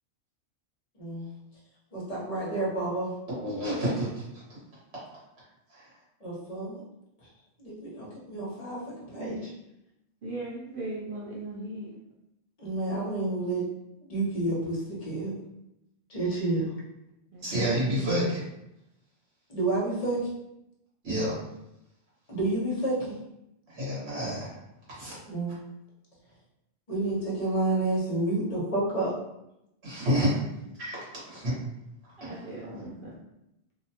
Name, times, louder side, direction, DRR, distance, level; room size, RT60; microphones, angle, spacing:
voice 1, 0.9-1.3 1.9-3.1 6.2-6.8 7.2-7.3 7.6-9.5 12.6-13.7 14.0-15.4 16.1-16.7 19.5-20.2 22.3-23.2 25.2-25.6 26.9-29.1, right 2 dB, 40° left, -6 dB, 0.9 m, -30 dB
voice 2, 3.4-4.2 5.7-5.8 17.4-18.4 21.0-21.4 23.7-24.5 24.9-25.2 29.8-30.3 30.8-31.6 32.2-32.3, equal, 75° right, -7 dB, 1.4 m, -29 dB
voice 3, 10.2-12.0 17.3-17.4 30.2-30.4 32.2-33.2, right 2 dB, 60° right, -5 dB, 0.8 m, -38 dB
2.8 x 2.2 x 2.8 m, 0.85 s
omnidirectional pair, 1.1 m